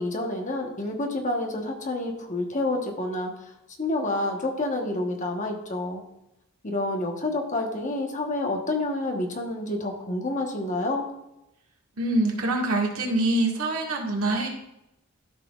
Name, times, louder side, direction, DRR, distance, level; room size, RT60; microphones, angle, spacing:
voice 1, 0.0-3.3 3.8-6.0 6.6-11.1, left 2 dB, 35° left, 2 dB, 1.1 m, -28 dB
voice 2, 12.0-14.5, right 2 dB, 85° right, -1 dB, 1.8 m, -25 dB
13.0 x 5.8 x 2.4 m, 0.88 s
head